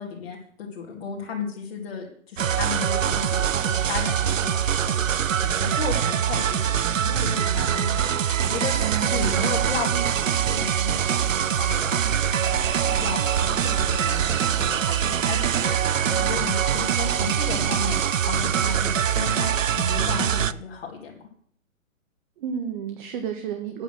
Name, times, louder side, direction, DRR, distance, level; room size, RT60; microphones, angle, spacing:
voice 1, 0.0-4.6 4.8-5.0 5.4-15.8 16.1-19.5 19.7-21.1, left 6 dB, 45° left, -2 dB, 2.2 m, -34 dB
sound 1, 2.4-20.5, right 9 dB, 70° right, 0.7 m, -23 dB
voice 2, 8.8-9.6 9.9-10.1 22.4-23.8, right 8 dB, 35° right, 5 dB, 1.5 m, -31 dB
8.9 x 7.0 x 7.8 m, 0.62 s
figure-of-eight pair, 125°, 41 cm